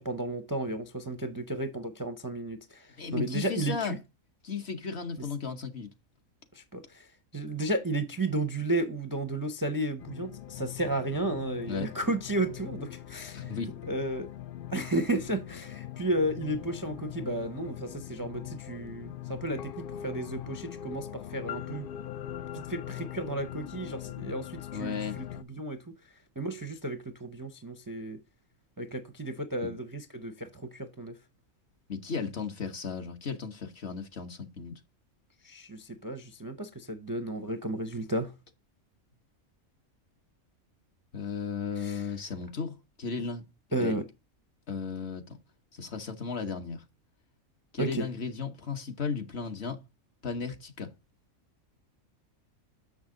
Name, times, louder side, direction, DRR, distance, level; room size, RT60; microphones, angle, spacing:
voice 1, 0.0-4.0 6.5-7.1 7.3-13.6 13.9-14.3 14.7-21.9 22.7-25.8 26.4-28.2 28.8-31.2 35.4-38.3 41.8-42.0 43.7-44.0 47.8-48.1, right 1 dB, 25° right, 0.4 m, -33 dB
voice 2, 2.9-4.0 4.4-5.9 11.7-11.9 13.3-13.7 24.7-25.2 29.6-29.7 31.9-34.7 41.1-43.4 43.8-44.0 44.7-45.4 45.7-46.8 47.7-49.8 50.2-50.9, left 5 dB, 50° left, 1.2 m, -35 dB
sound 1, 10.0-25.4, left 11 dB, 85° left, 0.4 m, -41 dB
6.7 x 6.3 x 3.7 m
omnidirectional pair, 1.5 m